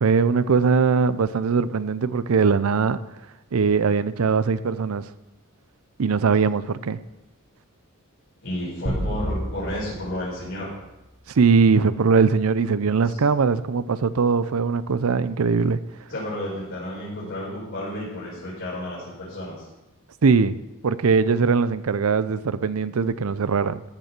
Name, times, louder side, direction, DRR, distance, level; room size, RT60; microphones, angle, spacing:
voice 1, 0.0-3.0 3.5-5.1 6.0-7.0 11.3-15.8 20.2-20.6 20.8-23.8, right 5 dB, 70° right, 0.5 m, -21 dB
voice 2, 8.4-10.7 13.0-13.2 16.1-19.6, left 1 dB, 55° left, 4.8 m, -32 dB
sound 1, 8.8-11.4, equal, 30° right, 2.0 m, -31 dB
14.0 x 5.5 x 6.0 m
head